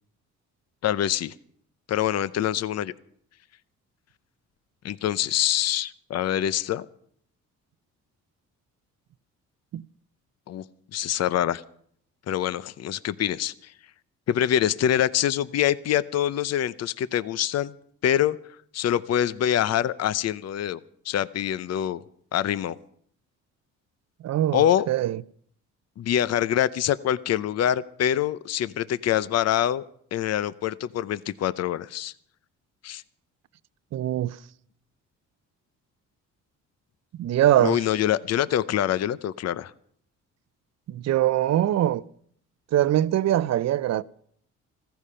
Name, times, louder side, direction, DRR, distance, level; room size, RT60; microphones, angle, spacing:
voice 1, 0.8-1.3 1.9-2.9 4.8-6.9 10.5-10.6 10.9-11.6 12.3-13.7 14.3-17.7 18.0-18.4 18.7-20.8 21.0-22.0 22.3-22.8 24.5-24.9 26.0-29.8 30.1-32.1 32.8-33.0 37.6-39.7, left 11 dB, 55° left, 0.7 m, -25 dB
voice 2, 24.2-25.2 33.9-34.4 37.2-37.8 40.9-42.0 42.7-44.0, right 12 dB, 60° right, 0.6 m, -22 dB
15.0 x 15.0 x 5.6 m
cardioid pair, 90°, 30 cm